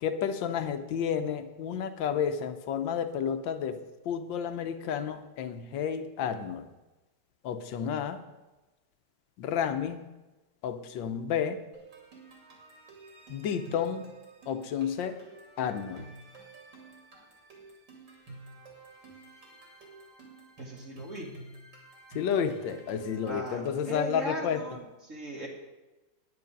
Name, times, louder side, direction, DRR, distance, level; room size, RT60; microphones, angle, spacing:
voice 1, 0.0-6.7 7.4-8.2 9.4-10.0 10.6-11.6 13.3-14.1 14.5-15.2 15.6-16.1 22.1-24.6, left 7 dB, 90° left, 10 dB, 1.5 m, -31 dB
sound 1, 11.7-24.0, right 2 dB, 75° right, 3.1 m, -50 dB
voice 2, 20.6-21.3 23.3-25.5, right 1 dB, 45° right, -2 dB, 1.7 m, -38 dB
10.0 x 9.7 x 5.3 m, 1.1 s
omnidirectional pair, 2.0 m